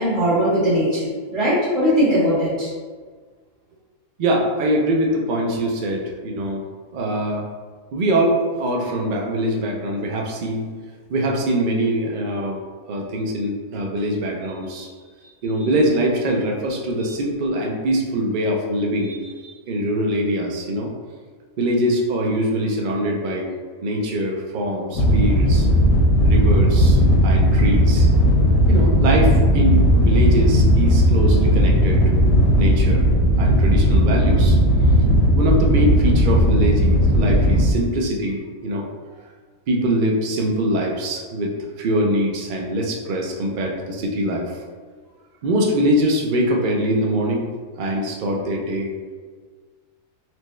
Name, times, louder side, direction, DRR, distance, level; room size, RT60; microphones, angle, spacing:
voice 1, 0.0-2.7, equal, 35° right, -13 dB, 0.9 m, -19 dB
voice 2, 4.2-6.7 6.9-7.4 7.9-10.7 11.1-12.6 12.9-14.9 15.4-20.9 21.6-23.5 23.8-25.7 26.2-28.1 28.7-32.3 32.6-33.1 33.4-34.6 35.3-38.9 39.7-44.6 45.4-47.5 47.8-48.9, right 1 dB, 75° right, 0 dB, 0.4 m, -23 dB
sound 1, 24.9-37.7, equal, 75° left, 1.1 m, -16 dB
4.3 x 2.2 x 3.1 m, 1.5 s
omnidirectional pair, 1.6 m